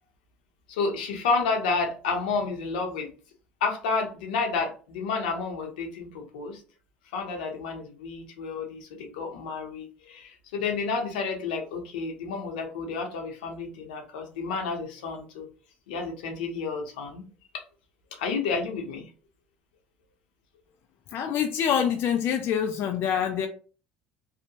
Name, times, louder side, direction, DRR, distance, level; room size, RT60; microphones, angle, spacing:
voice 1, 0.7-3.1 3.6-6.6 7.1-15.5 15.9-17.2 17.5-17.6 18.1-19.1, left 4 dB, 85° left, 0.7 m, -30 dB
voice 2, 21.1-23.5, left 8 dB, 55° left, 0.3 m, -25 dB
2.7 x 2.1 x 2.8 m
hypercardioid pair, 75°, 5 cm